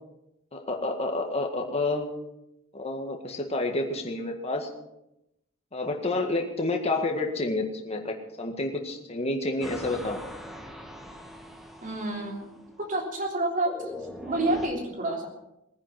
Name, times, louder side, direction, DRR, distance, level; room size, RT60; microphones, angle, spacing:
voice 1, 0.5-2.1 2.7-4.7 5.7-10.2, left 2 dB, 30° left, 3 dB, 1.9 m, -29 dB
sound 1, 9.6-14.7, left 1 dB, ahead, 1.7 m, -42 dB
voice 2, 11.8-12.5 12.8-13.7 14.2-15.3, right 2 dB, 40° right, 1 dB, 3.4 m, -28 dB
20.0 x 10.0 x 5.9 m, 0.87 s
head